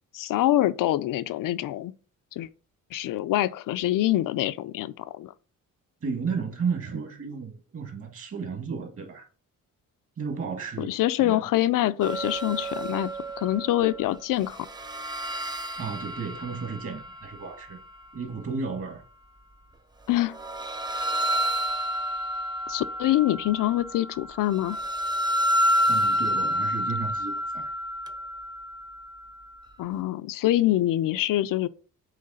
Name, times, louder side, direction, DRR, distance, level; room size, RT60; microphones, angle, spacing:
voice 1, 0.1-1.9 2.3-2.5 2.9-5.3 10.8-13.1 13.4-14.6 20.1-20.4 22.7-24.8 29.8-31.7, left 14 dB, 75° left, 0.5 m, -25 dB
voice 2, 6.0-9.3 10.2-10.9 11.2-11.4 15.7-17.8 18.1-19.0 25.9-27.7, right 5 dB, 45° right, 1.8 m, -33 dB
sound 1, 12.0-14.2 14.4-17.6 20.2-29.7, equal, 15° right, 0.4 m, -29 dB
7.7 x 3.2 x 5.5 m
cardioid pair, 160°, 32 cm